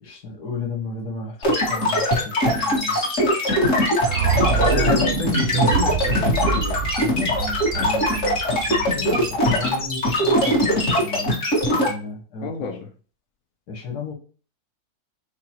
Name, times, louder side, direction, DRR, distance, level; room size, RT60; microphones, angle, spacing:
voice 1, 0.0-3.1 4.4-5.3 7.0-11.4 11.7-12.7 13.7-14.1, left 3 dB, 85° left, 1 dB, 1.9 m, -33 dB
sound 1, 1.4-11.9, left 1 dB, 50° left, 2.1 m, -21 dB
sound 2, 4.0-10.1, right 6 dB, 70° right, 0.6 m, -26 dB
voice 2, 4.5-6.8 12.4-12.9, left 6 dB, 65° left, 4 dB, 1.1 m, -29 dB
6.5 x 2.5 x 2.9 m, 0.39 s
omnidirectional pair, 1.7 m